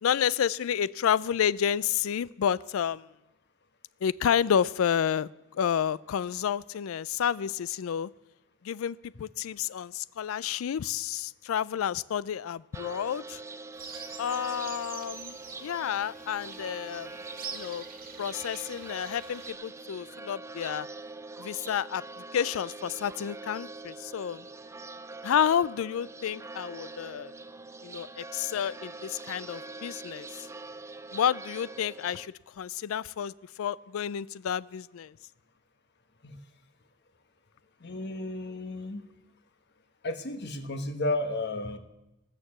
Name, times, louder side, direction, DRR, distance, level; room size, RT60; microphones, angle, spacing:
voice 1, 0.0-3.1 4.0-8.1 8.6-13.4 14.2-17.1 17.5-17.8 18.2-20.9 21.4-22.0 22.3-24.5 25.2-27.3 27.8-30.5 31.1-35.1, left 8 dB, 75° left, 21 dB, 0.4 m, -30 dB
sound 1, 12.7-32.3, right 3 dB, 15° right, 0.4 m, -44 dB
sound 2, 13.7-19.5, right 6 dB, 45° right, 1.7 m, -45 dB
voice 2, 37.8-39.0 40.0-41.8, left 2 dB, 55° left, 7 dB, 1.2 m, -33 dB
18.0 x 6.7 x 7.2 m, 0.95 s
head